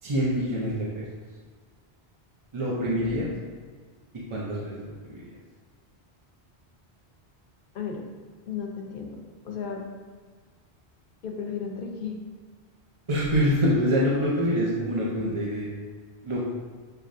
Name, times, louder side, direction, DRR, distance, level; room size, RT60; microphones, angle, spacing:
voice 1, 0.0-1.0 2.5-3.3 4.1-5.3 13.1-15.7 16.2-16.4, equal, 35° right, -6 dB, 0.6 m, -26 dB
voice 2, 2.9-3.3 7.7-8.0 8.5-9.2 9.4-9.8 11.2-12.2, left 6 dB, 60° left, 1 dB, 0.8 m, -34 dB
6.6 x 3.0 x 2.6 m, 1.5 s
omnidirectional pair, 1.1 m